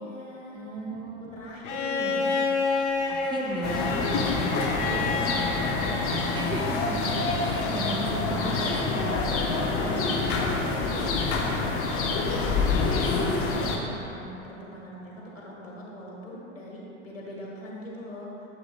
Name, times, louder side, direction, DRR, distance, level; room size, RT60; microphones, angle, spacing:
voice 1, 0.0-0.9 1.2-2.4 3.3-4.1 4.6-6.0 7.1-8.6 9.7-10.4 10.8-11.1 11.5-18.5, left 1 dB, 85° left, -4 dB, 1.5 m, -42 dB
voice 2, 0.5-1.5 2.0-2.3 3.1-5.5 6.3-7.0 7.4-9.2 9.8-10.2, right 3 dB, 15° right, 0 dB, 0.5 m, -36 dB
Bowed string instrument, 1.6-6.7 8.1-8.2, left 4 dB, 60° left, 1.0 m, -29 dB
sound 1, 3.6-13.8, left 3 dB, 35° left, 1.0 m, -27 dB
9.0 x 7.7 x 2.2 m, 2.9 s
figure-of-eight pair, 80°, 38 cm